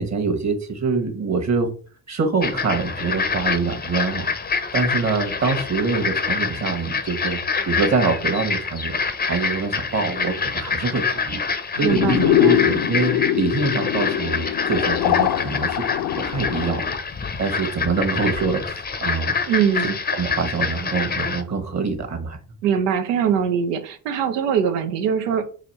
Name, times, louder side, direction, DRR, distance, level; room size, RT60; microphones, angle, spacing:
voice 1, 0.0-1.7 2.1-4.3 4.7-7.4 7.6-11.4 11.7-15.8 16.1-16.9 17.4-19.3 20.1-22.4, right 4 dB, 35° right, 6 dB, 1.3 m, -25 dB
sound 1, 2.4-21.4, left 5 dB, 20° left, 0.6 m, -26 dB
sound 2, 11.8-17.0, left 11 dB, 70° left, 0.7 m, -22 dB
voice 2, 11.8-12.6 19.5-20.0 22.6-25.5, right 7 dB, 85° right, 9 dB, 0.7 m, -22 dB
4.2 x 2.8 x 4.1 m, 0.40 s
hypercardioid pair, 55°, 46 cm